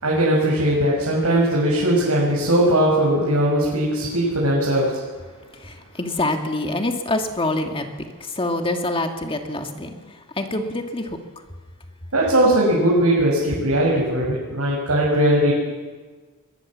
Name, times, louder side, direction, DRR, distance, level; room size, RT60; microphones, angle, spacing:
voice 1, 0.0-5.0 12.1-15.5, right 1 dB, 90° right, -4 dB, 5.8 m, -19 dB
voice 2, 5.5-7.9 8.2-11.2, left 2 dB, 25° left, 5 dB, 2.0 m, -26 dB
21.5 x 20.5 x 7.4 m, 1.4 s
head